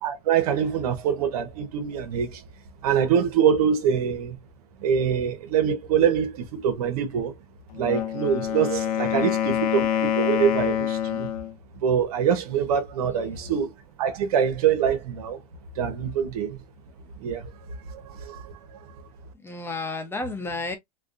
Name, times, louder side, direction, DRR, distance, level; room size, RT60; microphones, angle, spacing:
voice 1, 0.0-2.4 2.8-4.4 4.8-7.3 7.7-11.3 11.7-13.7 14.0-15.4 15.8-16.6 17.2-17.5 17.9-18.6, right 8 dB, 75° right, 1.0 m, -24 dB
Wind instrument woodwind instrument, 7.7-11.5, left 10 dB, 75° left, 0.9 m, -26 dB
voice 2, 9.1-9.5 13.1-13.6 19.4-20.8, left 2 dB, 10° left, 0.9 m, -33 dB
4.5 x 2.2 x 2.5 m
supercardioid pair, 120°, 19 cm